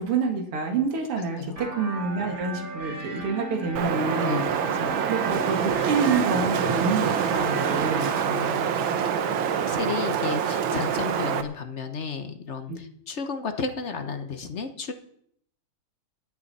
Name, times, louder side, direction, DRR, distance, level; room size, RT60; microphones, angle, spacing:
voice 1, 0.0-4.5 5.1-8.1 12.7-12.8, right 4 dB, 85° right, 3 dB, 2.7 m, -27 dB
sound 1, 1.6-8.2, right 3 dB, 40° right, 4.0 m, -36 dB
Wind, 3.8-11.4, right 7 dB, 70° right, 1.7 m, -26 dB
voice 2, 8.2-8.8 9.6-14.9, left 5 dB, 45° left, 7 dB, 0.9 m, -33 dB
26.5 x 9.2 x 4.2 m, 0.68 s
omnidirectional pair, 2.4 m